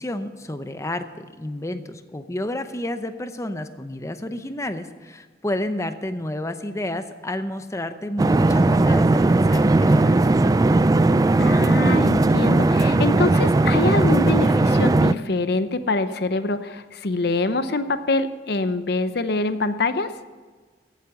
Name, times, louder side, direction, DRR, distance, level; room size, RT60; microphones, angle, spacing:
voice 1, 0.0-10.1, left 1 dB, 15° left, 10 dB, 0.7 m, -30 dB
sound 1, 8.2-15.1, right 2 dB, 20° right, 0.3 m, -17 dB
voice 2, 11.4-20.1, left 3 dB, 60° left, 11 dB, 0.8 m, -24 dB
15.5 x 8.4 x 7.1 m, 1.4 s
head